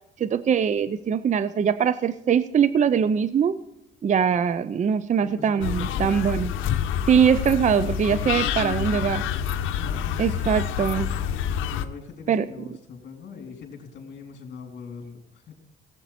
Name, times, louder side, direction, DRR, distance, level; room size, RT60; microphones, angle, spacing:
voice 1, 0.2-3.6 4.0-6.5 7.1-9.2 10.2-11.1 12.3-12.4, right 7 dB, 40° right, 14 dB, 0.5 m, -22 dB
voice 2, 5.2-6.4 8.1-10.9 11.6-15.5, left 5 dB, 60° left, 2 dB, 3.5 m, -41 dB
sound 1, 5.6-11.9, left 9 dB, 90° left, 0.7 m, -27 dB
17.0 x 8.3 x 4.2 m, 0.89 s
cardioid pair, 90°, 20 cm